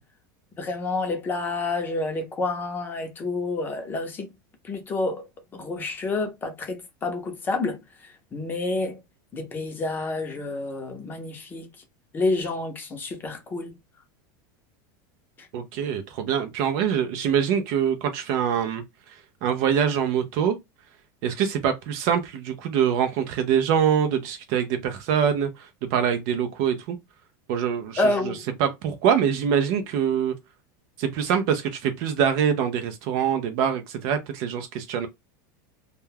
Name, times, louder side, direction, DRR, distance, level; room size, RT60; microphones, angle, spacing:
voice 1, 0.6-4.3 4.6-5.2 5.5-9.0 9.3-11.7 12.1-13.7 28.0-28.4, left 3 dB, 20° left, 0.6 m, -29 dB
voice 2, 15.5-18.8 19.4-20.6 21.2-27.0 27.5-28.3 28.6-30.3 31.0-35.1, right 8 dB, 50° right, 0.4 m, -24 dB
2.2 x 2.2 x 3.2 m
supercardioid pair, 160°, 11 cm